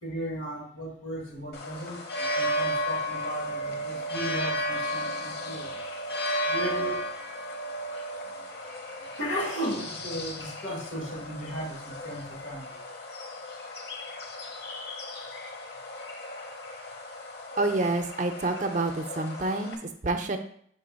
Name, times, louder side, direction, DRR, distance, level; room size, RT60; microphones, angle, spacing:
voice 1, 0.0-5.8 6.5-7.1 8.4-8.5 9.2-12.8, equal, 80° left, 0 dB, 1.8 m, -36 dB
sound 1, 1.5-19.7, equal, 55° left, 1.0 m, -34 dB
voice 2, 17.6-20.4, right 2 dB, 40° right, 6 dB, 0.5 m, -28 dB
5.1 x 4.1 x 5.1 m, 0.64 s
head